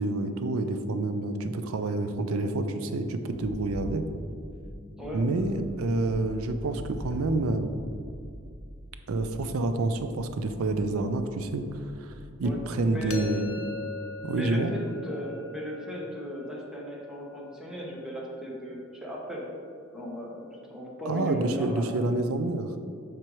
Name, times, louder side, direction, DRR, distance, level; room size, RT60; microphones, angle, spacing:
voice 1, 0.0-4.0 5.1-7.7 9.1-12.1 12.4-13.5 14.2-14.7 21.1-22.7, right 2 dB, 85° right, 8 dB, 0.5 m, -28 dB
sound 1, 3.3-13.4, equal, 20° right, 0.5 m, -43 dB
sound 2, 13.1-18.9, left 5 dB, 90° left, 0.5 m, -42 dB
voice 2, 14.3-19.4 19.9-21.9, equal, 5° right, -3 dB, 0.9 m, -37 dB
7.5 x 5.0 x 3.1 m, 2.4 s
head